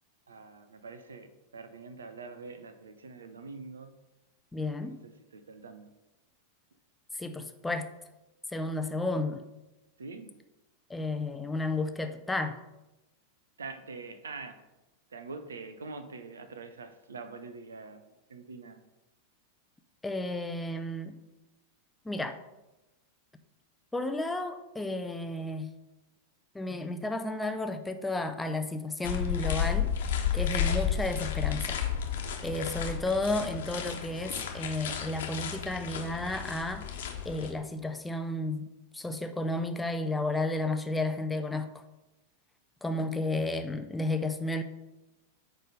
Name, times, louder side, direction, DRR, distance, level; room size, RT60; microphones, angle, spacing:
voice 1, 0.3-3.9 4.9-5.9 10.0-10.3 13.6-14.6 15.1-18.8, right 4 dB, 70° right, 9 dB, 0.7 m, -44 dB
voice 2, 4.5-5.0 7.1-7.9 8.5-9.4 10.9-12.6 20.0-21.2 22.0-22.4 23.9-25.7 26.5-31.8 32.4-36.8 37.2-38.7 38.9-41.7 42.8-44.6, left 2 dB, 10° left, 7 dB, 0.5 m, -32 dB
sound 1, 29.0-37.5, left 8 dB, 60° left, 1.1 m, -32 dB
9.3 x 3.4 x 5.3 m, 0.99 s
figure-of-eight pair, 90°, 0 cm